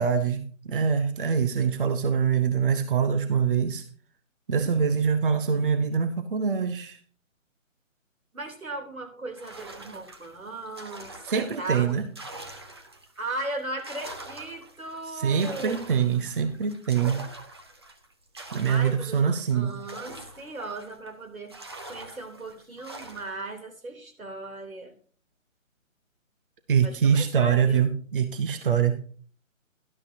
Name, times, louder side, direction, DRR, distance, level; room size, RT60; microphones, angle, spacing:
voice 1, 0.0-3.8 4.5-7.0 11.2-12.0 15.1-17.3 18.5-19.7 26.7-29.1, right 6 dB, 40° right, 9 dB, 0.9 m, -24 dB
voice 2, 4.6-4.9 8.3-11.2 11.6-12.0 13.2-15.8 18.7-21.6 21.9-24.9 26.8-27.9, right 2 dB, 85° right, 4 dB, 3.4 m, -37 dB
sound 1, 9.4-13.2 13.6-21.1 21.5-23.5, right 2 dB, 20° right, 0.7 m, -44 dB
12.0 x 12.0 x 2.8 m, 0.42 s
figure-of-eight pair, 155°, 40 cm